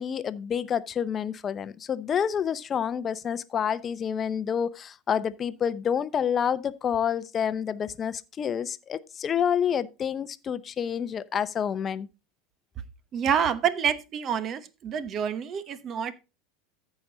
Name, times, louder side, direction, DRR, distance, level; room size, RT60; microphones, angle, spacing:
voice 1, 0.0-12.1, left 8 dB, 35° left, 0.7 m, -28 dB
voice 2, 13.1-16.1, right 8 dB, 40° right, 0.9 m, -27 dB
14.0 x 5.0 x 3.9 m
hypercardioid pair, 90°, 0 cm